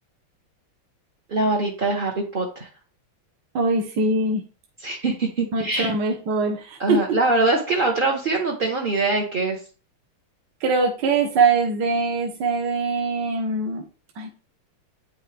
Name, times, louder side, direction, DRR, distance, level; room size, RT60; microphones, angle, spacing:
voice 1, 1.3-2.7 4.8-5.9 6.8-9.6, right 2 dB, 40° right, -1 dB, 0.8 m, -23 dB
voice 2, 3.5-4.4 5.5-7.0 10.6-13.8 14.2-14.3, right 3 dB, 60° right, 2 dB, 1.6 m, -22 dB
9.2 x 5.7 x 3.3 m, 0.36 s
omnidirectional pair, 2.4 m